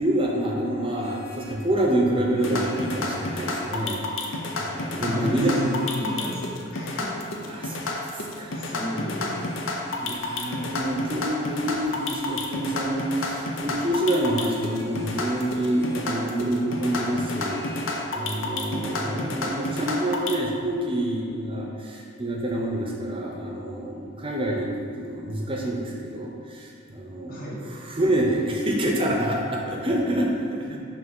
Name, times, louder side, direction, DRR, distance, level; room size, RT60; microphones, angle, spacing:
voice 1, 0.0-5.8 7.4-7.8 8.1-8.6 10.0-17.8 18.1-30.8, right 1 dB, 25° right, -1 dB, 0.7 m, -27 dB
Vehicle horn car horn honking, 0.7-1.7 2.3-3.8 4.7-6.7 9.3-10.7 11.9-12.6 14.0-16.2 17.4-18.1, left 1 dB, 15° left, 0.5 m, -45 dB
sound 1, 2.4-20.3, left 2 dB, 70° left, 0.6 m, -30 dB
voice 2, 5.0-7.2 8.6-9.5 19.0-19.3 27.3-27.6, left 1 dB, 45° left, -5 dB, 1.3 m, -32 dB
6.0 x 2.9 x 5.4 m, 2.5 s
head